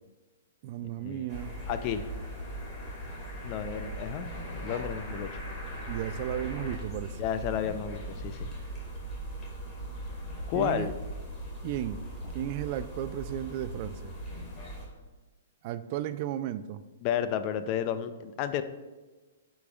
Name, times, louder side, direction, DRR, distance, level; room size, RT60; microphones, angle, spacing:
voice 1, 0.6-1.6 5.9-7.2 10.5-10.9 11.6-12.1 12.3-14.1 15.6-16.8, right 12 dB, 45° right, 14 dB, 0.3 m, -34 dB
sound 1, 1.3-14.9, right 1 dB, 25° left, 2.0 m, -39 dB
voice 2, 1.7-2.1 3.4-5.4 7.2-8.5 10.5-10.9 17.0-18.6, left 9 dB, 40° left, 11 dB, 0.4 m, -32 dB
10.5 x 5.2 x 2.4 m, 1.2 s
hypercardioid pair, 120°, 0 cm